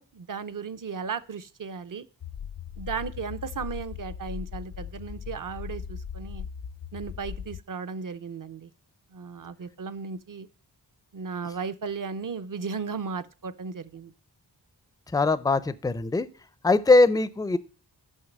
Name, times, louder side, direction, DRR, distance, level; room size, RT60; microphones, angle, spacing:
voice 1, 0.0-2.1 2.8-6.4 6.9-8.7 9.1-10.5 11.1-14.1, right 5 dB, 50° right, 0.7 m, -35 dB
sound 1, 2.2-7.6, left 7 dB, 65° left, 0.6 m, -38 dB
voice 2, 15.1-16.3 16.6-17.6, left 3 dB, 10° left, 0.5 m, -21 dB
6.4 x 5.7 x 7.3 m
wide cardioid pair, 80°, 42 cm